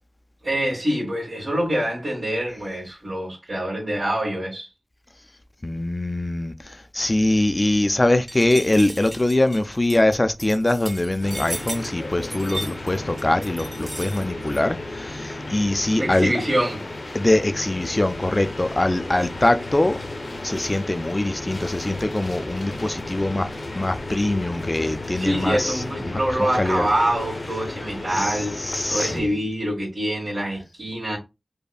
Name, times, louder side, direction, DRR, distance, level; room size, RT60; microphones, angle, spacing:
voice 1, 0.4-4.7 16.0-16.8 25.1-28.6 28.9-31.2, right 1 dB, 65° right, 1.7 m, -25 dB
voice 2, 5.6-6.5 6.9-16.3 17.1-20.0 20.4-23.5 23.7-25.7 26.6-26.9 28.1-28.3 28.7-29.3, left 1 dB, 35° left, 0.4 m, -22 dB
sound 1, 8.3-14.6, right 1 dB, 35° right, 1.6 m, -36 dB
sound 2, 11.2-29.2, left 2 dB, 85° left, 0.9 m, -34 dB
5.2 x 2.1 x 2.3 m
wide cardioid pair, 50°, 0 cm